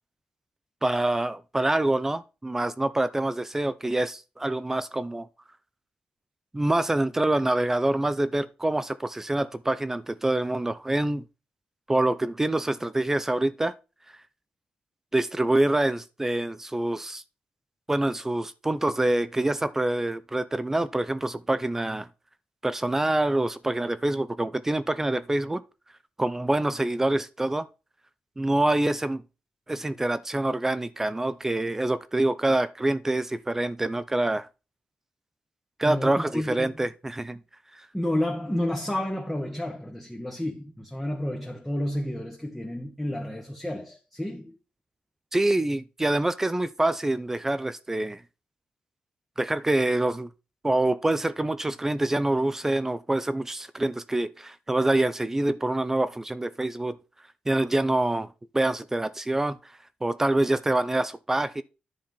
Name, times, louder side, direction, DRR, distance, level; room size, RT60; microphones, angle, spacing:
voice 1, 0.8-5.3 6.5-11.3 11.9-13.7 15.1-17.2 17.9-22.1 22.6-25.6 26.2-27.7 28.4-29.2 29.7-34.5 35.8-37.4 37.7-37.9 45.3-48.2 49.4-50.3 50.6-57.0 57.5-59.6 60.0-61.6, right 1 dB, 15° right, 0.5 m, -26 dB
voice 2, 35.8-36.9 37.9-44.6, left 1 dB, 5° left, 1.4 m, -31 dB
10.5 x 4.5 x 5.5 m
wide cardioid pair, 145°, 3 cm